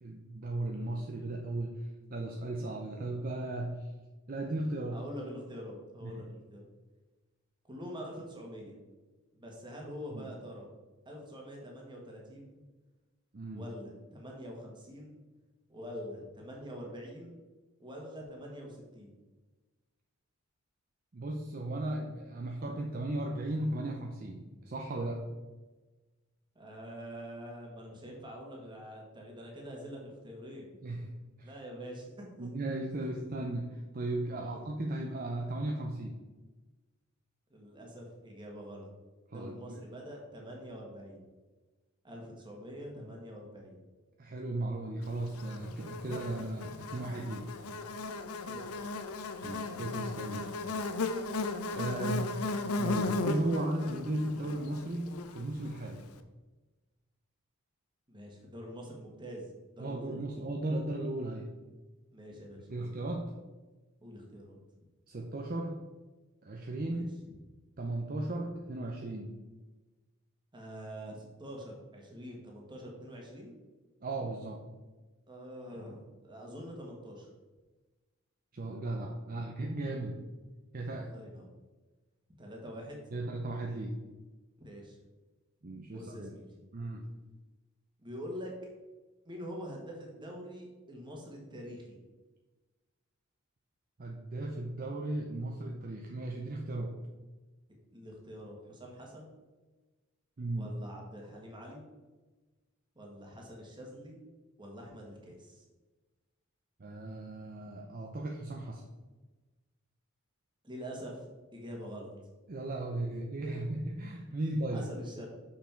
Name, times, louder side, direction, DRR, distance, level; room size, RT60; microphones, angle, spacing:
voice 1, 0.0-3.9 4.3-5.0 6.0-6.2 10.1-10.3 13.3-13.7 21.1-25.2 30.8-31.5 32.4-36.2 39.3-39.8 44.2-47.4 49.4-50.5 51.7-52.5 52.8-56.0 59.8-61.5 62.7-63.3 65.1-65.8 66.4-67.1 67.8-69.3 74.0-74.6 78.5-80.2 80.7-81.1 83.1-84.0 85.6-86.3 86.7-87.0 94.0-96.9 100.4-100.7 106.8-108.8 112.5-114.9, right 1 dB, 40° right, 1 dB, 0.6 m, -36 dB
voice 2, 4.9-6.7 7.7-8.8 9.3-10.7 11.0-12.6 13.5-15.1 15.7-17.4 17.8-19.1 26.5-30.7 31.4-32.5 34.4-34.6 37.5-38.9 39.3-41.2 42.0-43.7 48.4-48.8 58.1-59.5 59.8-60.2 62.1-62.9 64.0-64.6 66.9-67.1 70.5-73.5 75.3-77.3 80.9-81.5 82.4-83.0 84.6-85.0 85.9-86.5 88.0-88.5 89.2-92.0 97.9-99.3 100.5-101.8 102.9-104.2 104.6-105.6 110.6-111.2 111.5-112.1 113.5-113.6 114.7-115.3, equal, 20° right, -1 dB, 1.6 m, -45 dB
Buzz, 45.4-55.8, left 3 dB, 85° left, 0.6 m, -36 dB
6.6 x 5.8 x 4.4 m, 1.2 s
head